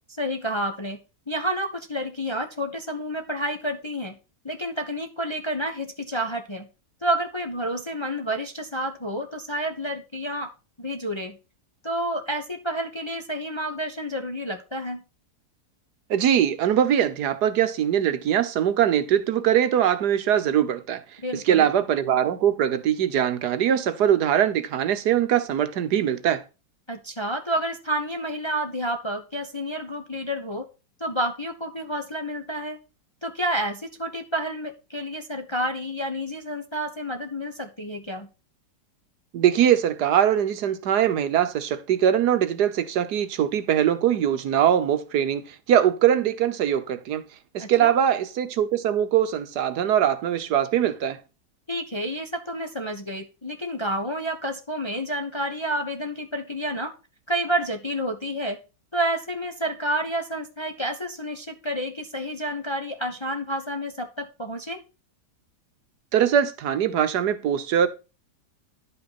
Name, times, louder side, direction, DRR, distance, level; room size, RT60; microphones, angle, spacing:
voice 1, 0.2-1.0 1.3-4.2 4.4-6.7 7.0-10.5 10.8-11.4 11.8-15.0 21.2-21.7 26.9-30.7 31.0-32.8 33.2-38.3 47.6-47.9 51.7-56.9 57.3-58.6 58.9-64.8, right 1 dB, 20° left, 0.9 m, -29 dB
voice 2, 16.1-21.0 21.5-26.4 39.3-47.2 47.5-51.2 66.1-67.9, right 10 dB, 70° right, 1.4 m, -22 dB
11.0 x 5.6 x 4.1 m
omnidirectional pair, 1.9 m